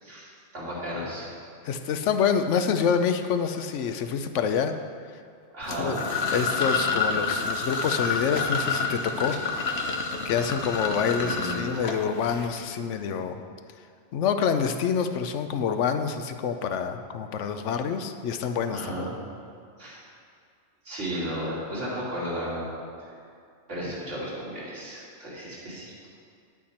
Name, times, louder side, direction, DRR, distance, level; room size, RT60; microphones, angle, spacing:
voice 1, 0.0-1.3 5.5-6.0 11.2-11.6 18.7-19.1 19.8-20.0 20.8-22.7 23.7-25.9, equal, 90° right, -8 dB, 3.2 m, -34 dB
voice 2, 1.6-4.7 5.8-6.0 6.3-9.4 10.2-13.4 14.1-19.1, left 6 dB, 85° left, 8 dB, 1.0 m, -27 dB
sound 1, 5.6-12.5, left 4 dB, 65° left, 1.1 m, -28 dB
10.0 x 8.7 x 4.3 m, 2.2 s
omnidirectional pair, 1.2 m